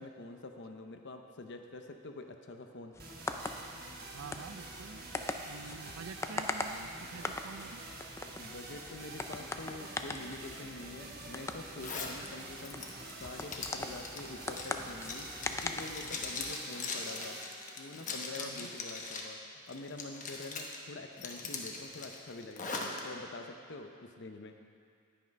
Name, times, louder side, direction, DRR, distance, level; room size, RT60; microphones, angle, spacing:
voice 1, 0.0-2.9 8.4-17.4 17.8-24.6, left 2 dB, 55° left, 5 dB, 0.6 m, -46 dB
sound 1, 2.9-16.5, left 2 dB, 15° left, 0.3 m, -42 dB
sound 2, 3.0-19.0, right 3 dB, 45° right, 1.1 m, -48 dB
voice 2, 4.1-5.0 5.5-7.8 18.4-18.7, right 5 dB, 70° right, 11 dB, 0.5 m, -47 dB
Zipper (clothing), 11.8-12.2 12.6-19.3 19.7-20.8 21.2-23.0, left 4 dB, 35° left, 1.0 m, -41 dB
10.0 x 9.5 x 5.2 m, 2.3 s
head